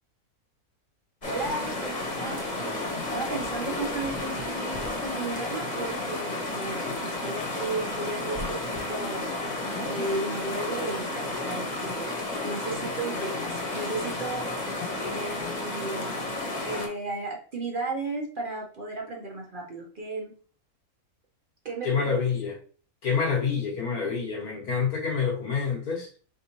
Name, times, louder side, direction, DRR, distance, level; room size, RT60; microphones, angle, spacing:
sound 1, 1.2-16.9, left 2 dB, 35° left, 1.0 m, -32 dB
voice 1, 1.2-12.1 12.4-14.7 15.0-16.2 16.6-20.3 21.6-22.1, right 2 dB, 45° right, -1 dB, 0.8 m, -34 dB
voice 2, 21.8-22.6 23.0-26.2, left 6 dB, 85° left, -1 dB, 1.7 m, -27 dB
3.8 x 3.6 x 2.9 m, 0.41 s
omnidirectional pair, 1.6 m